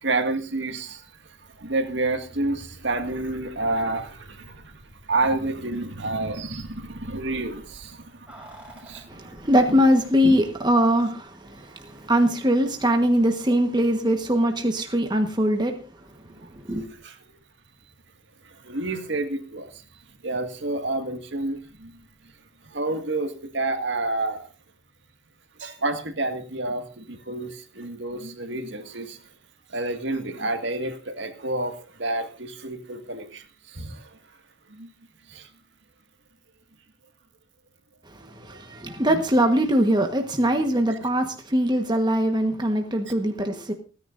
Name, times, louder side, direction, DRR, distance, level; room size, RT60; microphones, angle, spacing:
voice 1, 0.0-1.0 1.6-4.8 5.1-8.3 8.8-9.1 16.4-16.5 17.0-17.2 18.4-19.8 20.2-21.9 22.7-24.5 25.6-29.2 29.7-34.2 34.7-34.9 35.3-35.5 40.9-41.0, right 2 dB, 65° right, 2.0 m, -29 dB
Keys jangling, 8.3-10.6 10.9-11.0, right 1 dB, 5° right, 6.5 m, -48 dB
voice 2, 9.1-15.8 16.5-16.9 38.1-43.7, equal, 20° right, 1.3 m, -22 dB
29.0 x 10.0 x 2.6 m
head